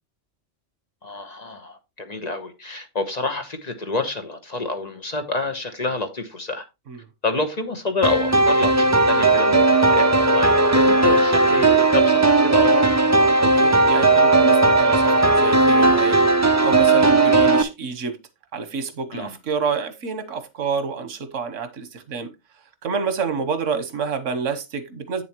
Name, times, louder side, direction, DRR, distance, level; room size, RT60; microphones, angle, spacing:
voice 1, 1.0-6.6 7.2-12.9 19.1-19.3, left 3 dB, 35° left, 1.0 m, -28 dB
sound 1, 8.0-17.6, right 2 dB, 20° right, 0.4 m, -16 dB
voice 2, 13.4-16.2 16.6-18.2 18.5-22.3 22.8-25.2, right 5 dB, 85° right, 1.4 m, -28 dB
8.4 x 6.9 x 3.0 m
omnidirectional pair, 1.3 m